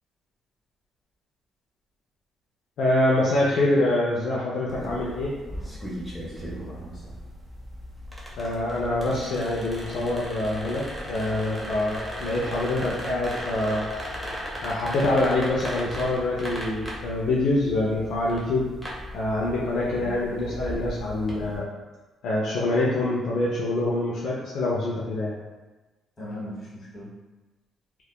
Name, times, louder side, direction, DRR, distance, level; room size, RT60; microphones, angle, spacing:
voice 1, 2.8-5.3 8.4-13.9 14.6-18.7 19.1-21.6 22.2-25.4, left 2 dB, 75° left, -5 dB, 0.4 m, -25 dB
sound 1, 4.7-21.6, equal, ahead, 0.7 m, -37 dB
voice 2, 6.2-7.3 19.9-20.2 26.2-27.1, equal, 35° left, -7 dB, 1.3 m, -40 dB
2.7 x 2.2 x 2.2 m, 1.2 s
cardioid pair, 90°, 0 cm